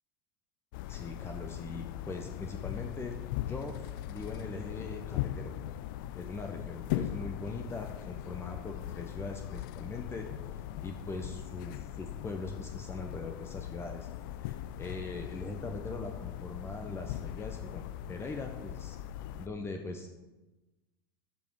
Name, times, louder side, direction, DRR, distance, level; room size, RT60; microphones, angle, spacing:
sound 1, 0.7-19.5, left 12 dB, 60° left, 0.6 m, -40 dB
voice 1, 0.9-5.5 6.1-10.3 10.8-14.1 14.4-19.0 19.4-20.1, left 3 dB, 20° left, 4 dB, 1.1 m, -41 dB
13.5 x 5.3 x 4.9 m, 1.1 s
hypercardioid pair, 90°, 12 cm